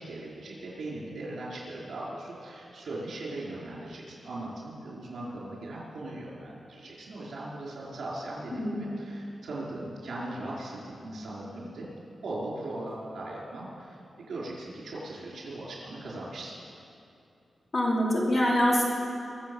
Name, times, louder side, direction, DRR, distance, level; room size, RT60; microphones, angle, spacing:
voice 1, 0.0-11.9 12.2-14.0 14.3-16.5, right 2 dB, 70° right, -5 dB, 4.9 m, -39 dB
voice 2, 8.5-8.9 17.7-18.8, left 1 dB, 35° left, -4 dB, 2.9 m, -25 dB
23.0 x 8.1 x 7.1 m, 2.8 s
wide cardioid pair, 165°, 0 cm